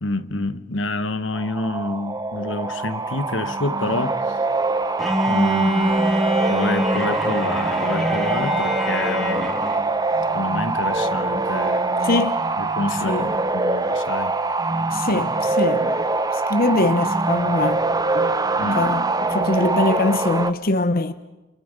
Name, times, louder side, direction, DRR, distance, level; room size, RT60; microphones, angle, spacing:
voice 1, 0.0-4.4 5.3-6.1 6.5-9.5 10.3-12.3 12.6-13.3 13.5-14.4 18.6-18.8, left 2 dB, 85° left, 1.4 m, -28 dB
sound 1, 1.3-20.5, right 3 dB, 20° right, 1.0 m, -23 dB
Bowed string instrument, 5.0-9.9, equal, ahead, 2.6 m, -25 dB
voice 2, 12.0-12.4 13.0-13.3 14.9-16.0 16.3-18.3 18.8-21.1, left 2 dB, 50° left, 0.9 m, -22 dB
28.5 x 28.5 x 5.4 m
head